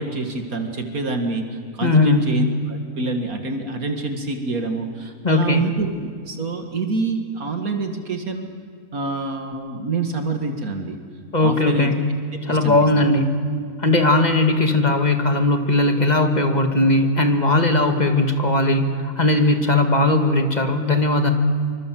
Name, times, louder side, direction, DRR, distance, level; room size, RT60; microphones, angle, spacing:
voice 1, 0.0-5.9 6.3-8.5 8.9-11.0 11.4-11.9 12.5-12.8, right 3 dB, 70° right, 5 dB, 2.4 m, -26 dB
voice 2, 1.8-2.3 5.2-5.6 11.3-11.9 12.5-13.4 13.8-21.3, left 2 dB, 30° left, 6 dB, 2.1 m, -18 dB
26.5 x 25.0 x 7.6 m, 2.1 s
omnidirectional pair, 1.6 m